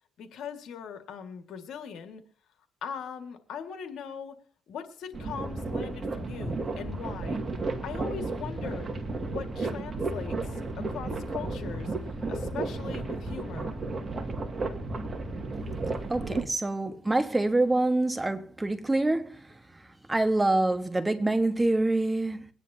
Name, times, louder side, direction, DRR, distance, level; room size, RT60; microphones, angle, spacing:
voice 1, 0.2-2.2 2.8-4.4 4.7-7.4 7.8-8.9 9.2-13.7, left 7 dB, 75° left, 1.8 m, -40 dB
sound 1, 5.1-16.5, right 3 dB, 35° right, 2.0 m, -33 dB
voice 2, 16.1-19.4 20.1-22.5, right 2 dB, 15° right, 1.3 m, -26 dB
23.0 x 9.8 x 2.8 m
cardioid pair, 90°, 0 cm